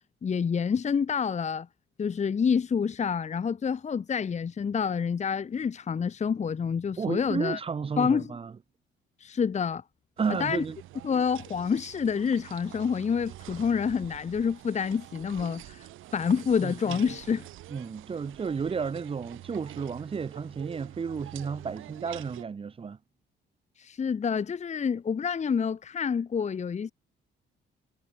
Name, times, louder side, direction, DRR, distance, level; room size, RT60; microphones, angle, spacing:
voice 1, 0.2-1.7 2.0-7.6 8.0-8.3 9.2-9.8 10.3-10.6 11.0-15.9 16.1-17.4 23.8-26.9, left 6 dB, 35° left, 1.0 m, -28 dB
voice 2, 7.0-8.5 10.2-10.8 16.6-17.0 17.7-23.0, right 5 dB, 30° right, 0.7 m, -32 dB
Ski resort-platter lift arrival area, 10.2-22.4, right 15 dB, 90° right, 6.8 m, -46 dB
cardioid pair, 90°, 20 cm